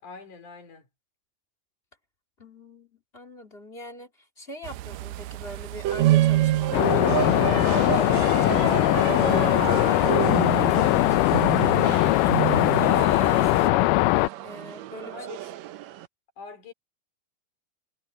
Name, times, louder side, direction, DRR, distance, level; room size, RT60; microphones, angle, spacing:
voice 1, 0.0-0.9 15.1-15.5 16.4-16.7, left 5 dB, 65° left, 4.9 m, -43 dB
voice 2, 2.4-15.3, left 1 dB, 20° left, 2.7 m, -43 dB
sound 1, 4.6-13.7, right 16 dB, 85° right, 1.6 m, -39 dB
sound 2, 5.8-16.1, right 14 dB, 70° right, 1.9 m, -28 dB
sound 3, 6.7-14.3, left 20 dB, 85° left, 2.1 m, -21 dB
omnidirectional pair, 3.8 m